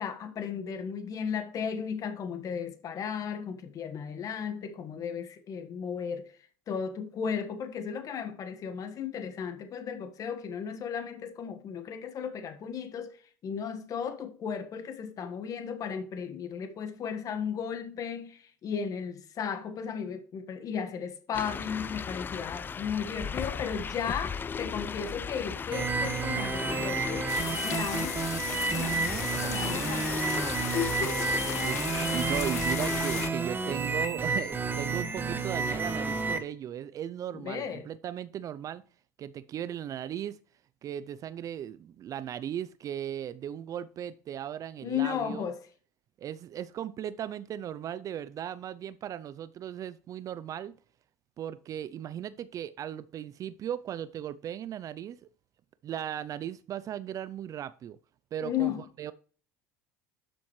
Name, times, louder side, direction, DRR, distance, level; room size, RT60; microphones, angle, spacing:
voice 1, 0.0-6.3 6.7-27.3 27.6-30.4 30.7-31.3 37.3-37.9 44.8-45.6 58.4-58.8, left 7 dB, 45° left, 1.5 m, -35 dB
sound 1, 21.3-33.3, left 6 dB, 25° left, 0.4 m, -37 dB
sound 2, 25.7-36.4, right 4 dB, 25° right, 1.6 m, -30 dB
sound 3, 27.3-33.3, left 14 dB, 85° left, 0.4 m, -37 dB
voice 2, 31.6-38.8 39.2-40.4 40.8-45.4 46.2-50.7 51.4-55.2 55.8-58.0 58.3-58.7 59.0-59.1, right 10 dB, 45° right, 0.5 m, -37 dB
12.0 x 7.0 x 3.2 m
hypercardioid pair, 80°, 8 cm